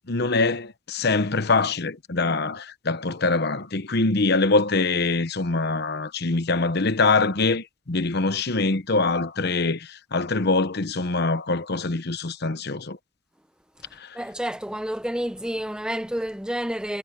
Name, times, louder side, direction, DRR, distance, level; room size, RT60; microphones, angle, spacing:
voice 1, 0.1-13.0 14.0-14.2, left 3 dB, 55° left, 1.0 m, -24 dB
voice 2, 14.1-17.0, equal, 5° right, 0.9 m, -29 dB
head